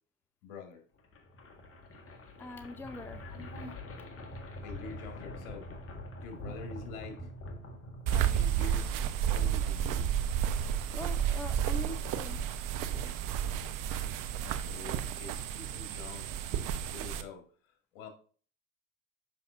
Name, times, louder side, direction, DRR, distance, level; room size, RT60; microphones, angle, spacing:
voice 1, 0.4-0.8 3.2-3.8 4.6-5.7 6.2-7.3 8.1-9.0 9.3-10.0 14.4-17.5 17.9-18.1, left 4 dB, 65° left, 5 dB, 2.1 m, -46 dB
sound 1, 1.0-9.0, left 1 dB, 30° left, 1.7 m, -45 dB
voice 2, 2.4-3.3 6.5-6.6 10.9-12.4 12.8-13.2, left 2 dB, 5° left, 8 dB, 0.6 m, -43 dB
sound 2, 8.1-17.2, right 9 dB, 50° right, 0.9 m, -31 dB
7.6 x 5.8 x 2.5 m, 0.42 s
hypercardioid pair, 80°, 41 cm